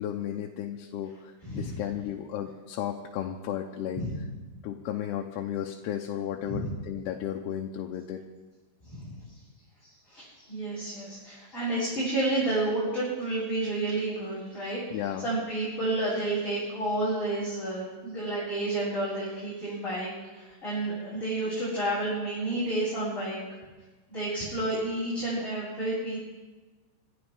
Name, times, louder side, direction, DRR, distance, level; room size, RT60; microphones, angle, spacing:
voice 1, 0.0-4.0 4.6-8.2 14.9-15.3, left 10 dB, 80° left, 2 dB, 2.8 m, -34 dB
voice 2, 1.4-1.8 4.0-4.2 6.5-6.7 8.8-9.2 9.8-23.4 24.1-26.2, right 2 dB, 10° left, -11 dB, 7.6 m, -30 dB
26.5 x 14.5 x 3.6 m, 1.2 s
omnidirectional pair, 4.8 m